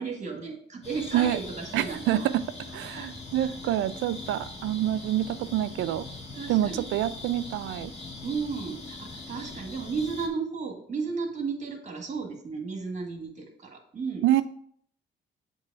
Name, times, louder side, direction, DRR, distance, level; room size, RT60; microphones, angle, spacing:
voice 1, 0.0-2.3 2.9-3.1 3.4-3.8 6.3-6.8 8.2-14.4, right 5 dB, 35° right, 3 dB, 1.6 m, -34 dB
sound 1, 0.8-10.3, left 2 dB, 30° left, 1.5 m, -41 dB
voice 2, 1.7-2.4 2.7-6.0 6.5-7.9 14.2-14.4, right 12 dB, 80° right, 14 dB, 0.4 m, -26 dB
7.5 x 3.0 x 4.6 m, 0.63 s
cardioid pair, 90°, 20 cm